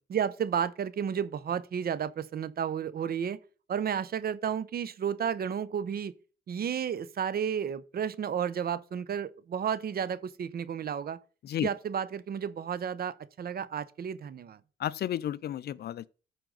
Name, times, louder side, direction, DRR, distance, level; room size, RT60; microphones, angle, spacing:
voice 1, 0.1-3.4 3.7-6.1 6.5-11.2 11.6-14.6, right 8 dB, 50° right, 0.7 m, -32 dB
voice 2, 14.8-16.1, left 11 dB, 55° left, 0.4 m, -32 dB
13.5 x 4.6 x 3.9 m
cardioid pair, 90°, 20 cm